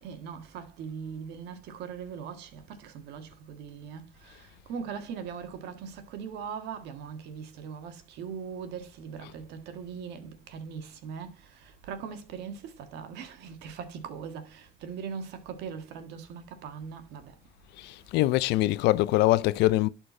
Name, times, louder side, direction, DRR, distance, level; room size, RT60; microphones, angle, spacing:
voice 1, 0.0-17.3, right 6 dB, 85° right, 1.6 m, -40 dB
voice 2, 17.8-19.9, left 17 dB, 90° left, 0.5 m, -23 dB
11.5 x 4.5 x 4.2 m
cardioid pair, 110°, 17 cm